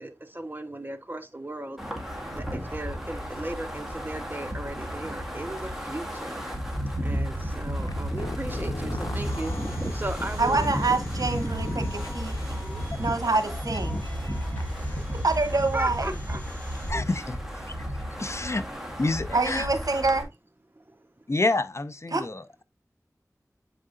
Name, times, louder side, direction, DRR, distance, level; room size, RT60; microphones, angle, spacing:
voice 1, 0.0-6.5 6.8-10.7 12.6-12.9 15.7-16.4 16.7-16.9 20.7-21.2, right 1 dB, 30° right, 1.0 m, -37 dB
Wind, 1.8-20.2, equal, 5° right, 1.9 m, -32 dB
sound 1, 7.8-15.0, left 2 dB, 70° left, 1.0 m, -41 dB
Domestic sounds home sounds, 9.2-16.9, left 1 dB, 25° left, 3.5 m, -47 dB
voice 2, 10.4-12.3 13.0-14.1 14.9-16.1 19.3-20.3 22.1-22.3, right 3 dB, 75° right, 0.9 m, -26 dB
voice 3, 16.9-17.4 17.7-17.8 18.2-18.6 19.0-19.7 21.3-22.6, left 2 dB, 50° left, 0.6 m, -28 dB
7.7 x 4.9 x 2.5 m
wide cardioid pair, 45°, 6 cm